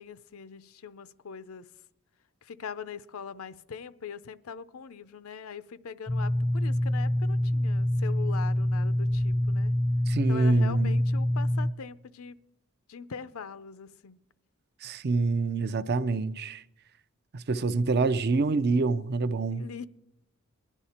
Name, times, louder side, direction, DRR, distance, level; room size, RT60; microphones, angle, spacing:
voice 1, 0.0-1.6 2.4-9.7 10.3-12.4 12.9-14.2 19.6-19.9, left 6 dB, 80° left, 0.5 m, -42 dB
sound 1, 6.1-11.7, left 1 dB, 25° left, 0.4 m, -26 dB
voice 2, 10.1-11.0 14.8-16.6 17.3-19.6, right 3 dB, 50° right, 0.5 m, -26 dB
20.5 x 11.0 x 4.3 m
head